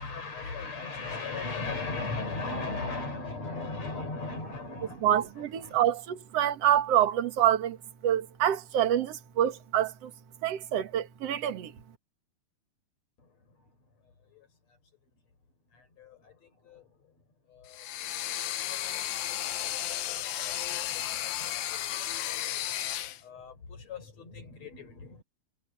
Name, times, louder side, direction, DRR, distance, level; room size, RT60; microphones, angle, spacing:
voice 1, 0.0-5.1 5.6-5.8 16.0-16.3 16.6-16.8 17.5-17.9 18.6-22.6 23.2-25.2, left 3 dB, 45° left, 5.9 m, -38 dB
voice 2, 5.0-7.8 8.0-10.1 10.4-11.7, right 11 dB, 55° right, 2.1 m, -26 dB
sound 1, 17.7-23.2, left 13 dB, 80° left, 1.7 m, -33 dB
omnidirectional pair, 4.5 m